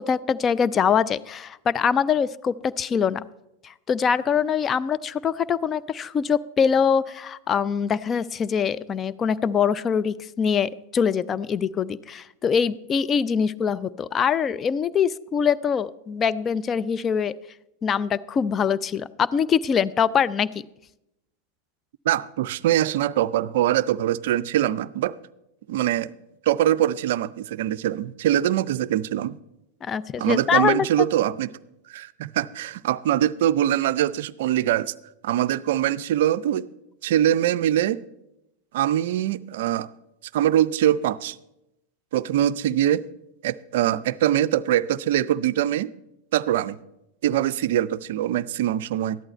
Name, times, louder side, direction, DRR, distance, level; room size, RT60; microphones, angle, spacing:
voice 1, 0.0-3.2 3.6-17.3 17.8-20.5 29.8-31.1, left 7 dB, 25° left, 17 dB, 0.4 m, -23 dB
voice 2, 22.1-25.1 25.7-26.1 26.5-29.4 30.2-31.5 31.9-34.9 35.2-36.7 37.0-38.0 38.7-39.9 40.3-41.4 42.1-43.0 43.4-45.9 46.3-46.8 47.2-49.2, right 12 dB, 55° right, 17 dB, 0.4 m, -23 dB
13.5 x 11.0 x 4.4 m, 0.88 s
figure-of-eight pair, 90°, 0 cm